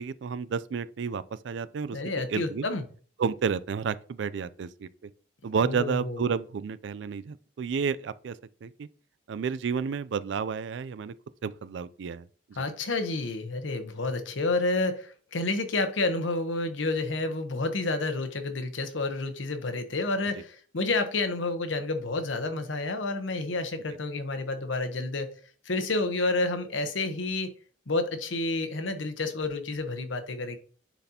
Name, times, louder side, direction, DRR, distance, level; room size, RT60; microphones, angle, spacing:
voice 1, 0.0-2.0 2.3-2.7 3.2-4.9 5.4-8.9 9.3-11.1 11.4-12.7, right 6 dB, 70° right, 0.4 m, -31 dB
voice 2, 1.9-2.8 5.6-6.2 12.6-25.3 25.6-27.5 27.9-30.6, left 2 dB, 85° left, 1.0 m, -29 dB
10.0 x 4.1 x 2.8 m
head